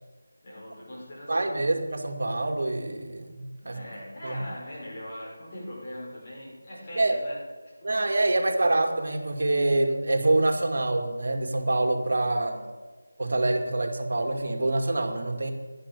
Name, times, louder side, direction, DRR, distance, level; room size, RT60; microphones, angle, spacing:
voice 1, 0.4-1.6 3.6-8.0 12.3-12.8, left 1 dB, 30° left, -5 dB, 5.5 m, -41 dB
voice 2, 1.3-3.8 4.2-4.4 7.0-7.2 7.8-12.6 13.2-15.5, right 2 dB, 60° right, 4 dB, 2.1 m, -26 dB
11.5 x 10.5 x 6.8 m, 1.3 s
figure-of-eight pair, 170°, 0 cm